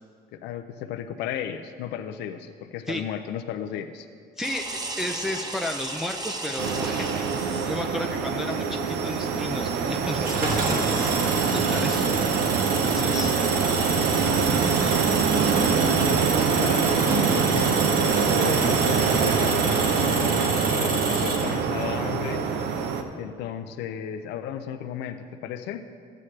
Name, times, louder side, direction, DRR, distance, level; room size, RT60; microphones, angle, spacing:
voice 1, 0.3-4.1 16.5-17.8 18.3-22.4 23.2-25.9, left 9 dB, 85° left, 7 dB, 0.5 m, -34 dB
voice 2, 4.4-4.7 5.0-12.0 12.7-13.4 14.2-15.8 16.4-16.5, left 1 dB, ahead, 2 dB, 0.4 m, -34 dB
sound 1, 4.4-7.9 10.9-11.8, right 2 dB, 25° right, 0.9 m, -35 dB
sound 2, 6.6-23.0, right 5 dB, 85° right, 0.8 m, -24 dB
Engine, 10.2-21.8, right 3 dB, 60° right, 1.7 m, -29 dB
14.0 x 8.6 x 3.2 m, 2.2 s
cardioid pair, 110°, 17 cm